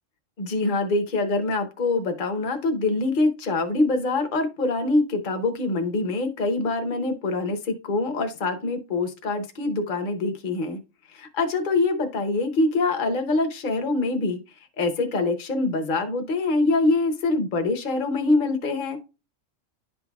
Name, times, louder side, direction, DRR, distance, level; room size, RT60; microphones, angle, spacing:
voice 1, 0.4-10.8 11.1-14.4 14.8-19.0, left 2 dB, 45° left, 7 dB, 1.0 m, -24 dB
11.0 x 4.0 x 2.3 m, 0.29 s
omnidirectional pair, 1.3 m